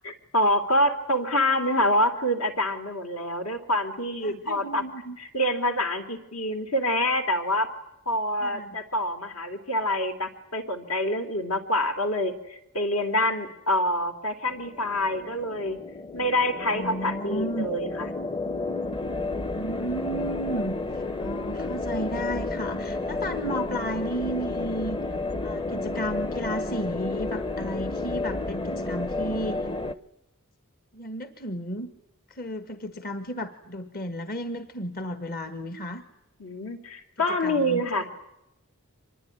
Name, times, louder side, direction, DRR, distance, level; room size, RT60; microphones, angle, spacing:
voice 1, 0.0-4.8 5.2-7.7 8.0-15.8 16.1-18.1 36.4-38.0, left 1 dB, 70° left, 6 dB, 3.2 m, -26 dB
voice 2, 4.2-5.2 8.4-8.8 16.6-17.7 19.5-25.0 25.4-29.7 30.9-31.9 32.3-36.0 37.3-38.0, equal, 45° left, 10 dB, 1.6 m, -33 dB
sound 1, 14.5-30.0, left 2 dB, 20° left, 0.9 m, -31 dB
25.5 x 21.0 x 9.9 m, 0.87 s
head